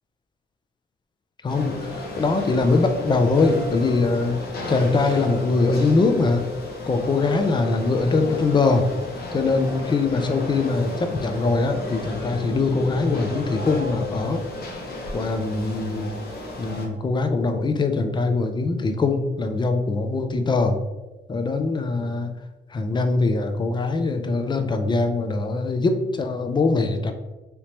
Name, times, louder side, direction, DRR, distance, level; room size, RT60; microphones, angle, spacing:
voice 1, 1.4-4.4 4.7-6.4 6.9-8.9 9.3-14.4 15.1-16.1 16.6-20.8 21.3-22.3 22.7-27.1, left 3 dB, 25° left, 7 dB, 0.4 m, -22 dB
sound 1, 1.5-16.9, left 2 dB, 50° left, 0.9 m, -33 dB
3.3 x 2.8 x 2.9 m, 1.1 s
cardioid pair, 90°, 20 cm